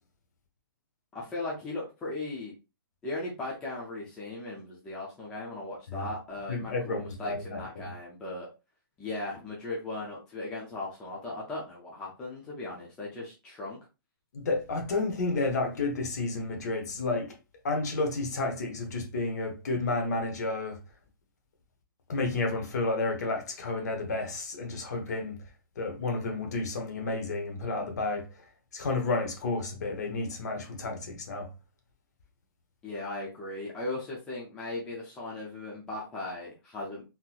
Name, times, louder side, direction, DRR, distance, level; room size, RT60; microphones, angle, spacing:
voice 1, 1.1-2.5 3.0-8.5 9.0-13.8 32.8-37.0, left 2 dB, 5° left, 0.4 m, -37 dB
voice 2, 6.5-7.9 14.3-17.4 17.6-20.8 22.1-25.4 25.8-28.3 28.7-31.5, left 3 dB, 45° left, 0.9 m, -31 dB
3.8 x 2.8 x 2.4 m
hypercardioid pair, 175°, 12 cm